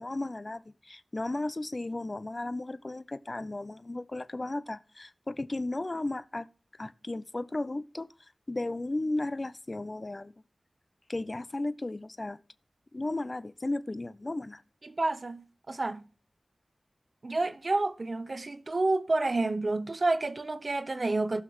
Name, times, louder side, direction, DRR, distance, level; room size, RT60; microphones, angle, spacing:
voice 1, 0.0-6.5 6.8-8.1 8.5-10.3 11.1-12.4 12.9-14.6, left 2 dB, 35° left, 0.6 m, -34 dB
voice 2, 14.8-16.0 17.2-21.4, right 2 dB, 50° right, 0.9 m, -29 dB
17.0 x 6.0 x 3.1 m
wide cardioid pair, 65°, 0 cm